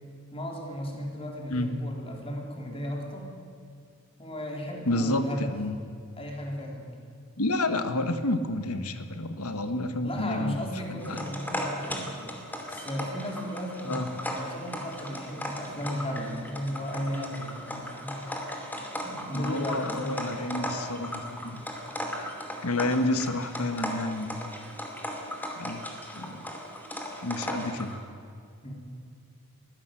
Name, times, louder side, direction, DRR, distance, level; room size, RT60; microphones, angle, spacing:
voice 1, 0.3-3.3 4.2-5.5 6.2-7.0 10.0-12.2 12.7-18.2 19.0-20.5 28.6-28.7, equal, 25° left, 0 dB, 4.0 m, -35 dB
voice 2, 4.9-5.8 7.4-10.6 10.9-11.3 13.8-14.1 19.3-21.6 22.6-24.5 25.5-25.8 26.1-26.5 27.2-28.0, left 2 dB, 75° left, 9 dB, 1.6 m, -30 dB
sound 1, 11.0-28.0, equal, 10° left, 2.7 m, -37 dB
22.0 x 16.0 x 7.8 m, 2.4 s
head